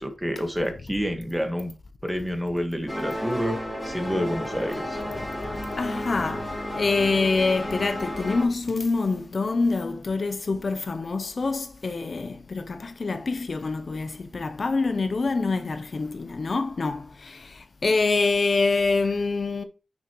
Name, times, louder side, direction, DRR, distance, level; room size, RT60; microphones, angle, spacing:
voice 1, 0.0-1.7 2.0-3.6 3.8-5.0, equal, 5° right, 1.5 m, -28 dB
sound 1, 2.9-8.4, left 1 dB, 15° left, 3.3 m, -32 dB
voice 2, 5.5-19.6, left 3 dB, 50° left, 0.6 m, -26 dB
9.6 x 6.0 x 3.0 m
wide cardioid pair, 125°, 0 cm